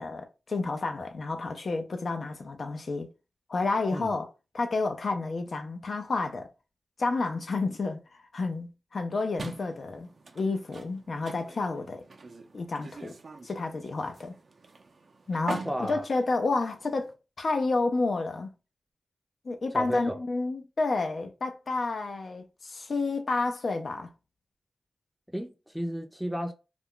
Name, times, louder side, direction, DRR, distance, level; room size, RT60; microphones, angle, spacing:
voice 1, 0.0-3.1 3.5-4.3 4.5-6.5 7.0-10.1 10.4-12.0 12.5-13.2 13.4-14.3 15.3-18.5 19.4-24.1, left 3 dB, 65° left, 0.5 m, -30 dB
sound 1, 9.4-17.1, right 3 dB, 65° right, 0.6 m, -44 dB
voice 2, 15.6-16.0 19.7-20.2 25.3-26.5, equal, ahead, 0.6 m, -33 dB
2.4 x 2.2 x 3.6 m
cardioid pair, 65°, 0 cm